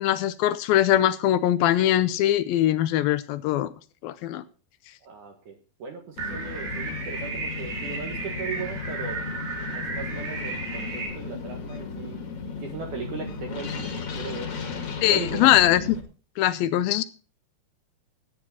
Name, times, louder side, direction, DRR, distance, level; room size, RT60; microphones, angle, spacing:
voice 1, 0.0-3.7 4.0-4.4 15.0-15.8 16.4-17.0, left 13 dB, 80° left, 2.4 m, -21 dB
voice 2, 5.0-9.2 9.7-12.2 12.6-14.5 15.1-15.5, right 5 dB, 60° right, 2.7 m, -38 dB
sound 1, 6.2-16.0, left 4 dB, 45° left, 2.7 m, -35 dB
sound 2, 6.2-11.1, right 4 dB, 85° right, 5.3 m, -34 dB
14.5 x 9.7 x 4.3 m
omnidirectional pair, 4.5 m